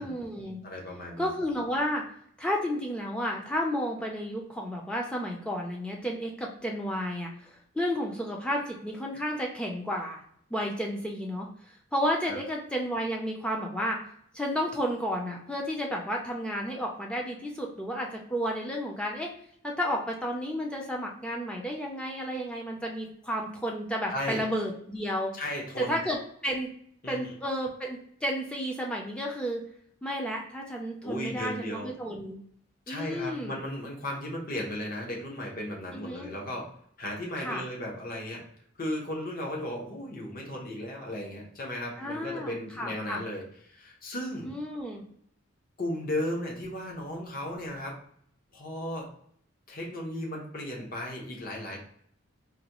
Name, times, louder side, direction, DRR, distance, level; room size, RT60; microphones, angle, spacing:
voice 1, 0.0-0.6 1.2-2.0 2.4-10.2 10.5-14.0 14.3-19.3 19.6-25.3 25.8-26.7 27.1-29.6 30.0-32.4 32.9-33.6 35.9-36.3 37.4-37.6 42.0-43.2 44.4-45.0, equal, 5° left, -1 dB, 0.4 m, -32 dB
voice 2, 0.6-1.3 12.3-12.4 24.1-24.4 25.4-26.0 27.0-27.3 31.0-31.9 32.9-36.7 37.0-38.4 38.7-44.5 45.8-48.0 48.5-49.1 49.7-51.8, left 1 dB, 45° left, -1 dB, 0.9 m, -35 dB
3.9 x 2.2 x 2.9 m, 0.66 s
head